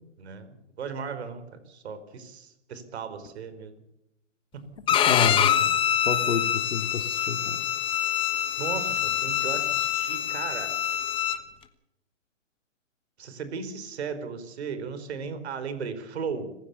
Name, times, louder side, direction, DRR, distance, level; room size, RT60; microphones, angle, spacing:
voice 1, 0.2-3.8 8.6-10.8 13.2-16.5, right 5 dB, 60° right, 11 dB, 4.7 m, -36 dB
Bowed string instrument, 4.9-11.4, left 10 dB, 15° left, 1.2 m, -25 dB
voice 2, 5.1-5.8 6.0-7.6, left 5 dB, 80° left, 9 dB, 2.8 m, -29 dB
25.5 x 15.5 x 7.1 m, 0.84 s
hypercardioid pair, 145°, 37 cm